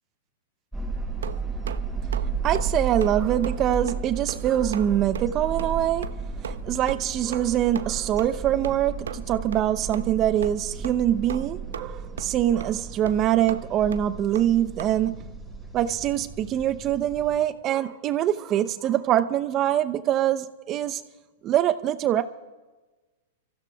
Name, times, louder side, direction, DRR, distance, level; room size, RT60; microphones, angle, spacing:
sound 1, 0.7-17.4, right 4 dB, ahead, 5.9 m, -33 dB
sound 2, 1.2-1.8 2.1-2.3 2.5-2.7 3.0-3.2 3.4-3.6 3.9-4.0 4.3-4.4 4.7-4.9 5.1-5.3 5.6-5.7 6.0-6.1 6.4-6.6 6.9-7.0 7.3-7.4 7.7-7.9 8.2-8.3 8.6-8.8 9.1-9.2 9.5-9.6 9.9-10.0 10.4-10.5 10.8-11.0 11.3-11.9 12.2-12.3 12.6-12.7 13.1-13.2 13.5-13.6 13.9-14.0 14.3-14.5 14.8-14.9, right 8 dB, 80° right, 0.7 m, -36 dB
voice 1, 2.4-6.1 6.4-15.2 15.7-21.0 21.4-22.2, right 11 dB, 35° right, 0.7 m, -24 dB
30.0 x 15.0 x 2.3 m
hypercardioid pair, 115°, 0 cm